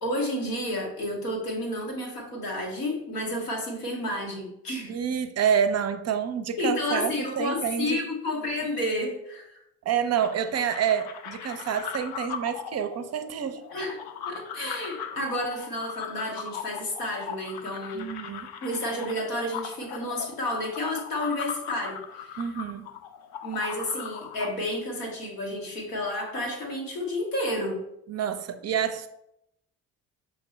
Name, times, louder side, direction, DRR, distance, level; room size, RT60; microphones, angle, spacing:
voice 1, 0.0-5.0 6.6-9.6 13.7-18.1 18.6-22.4 23.4-27.8, left 1 dB, 90° left, 1 dB, 0.9 m, -31 dB
voice 2, 4.9-8.0 9.9-13.6 17.9-18.5 22.4-22.9 28.1-29.1, right 8 dB, 35° right, 9 dB, 0.4 m, -28 dB
sound 1, 10.2-24.5, left 8 dB, 55° left, 0.6 m, -39 dB
5.8 x 2.6 x 3.1 m, 0.81 s
hypercardioid pair, 45°, 46 cm